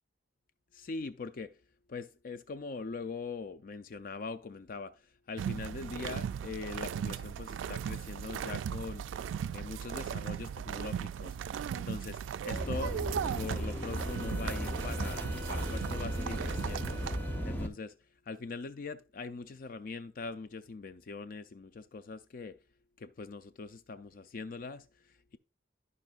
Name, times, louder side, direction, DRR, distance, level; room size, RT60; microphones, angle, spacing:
voice 1, 0.7-1.5 1.9-5.0 5.3-9.0 9.5-11.4 11.7-13.0 13.3-17.0 17.4-17.9 18.3-22.6 23.0-25.4, left 4 dB, 50° left, 0.4 m, -42 dB
sound 1, 5.4-17.2, right 8 dB, 85° right, 0.3 m, -37 dB
sound 2, 12.5-17.7, equal, 10° left, 0.8 m, -36 dB
Wind instrument woodwind instrument, 13.9-17.7, equal, 60° right, 0.9 m, -48 dB
13.5 x 5.3 x 2.4 m
head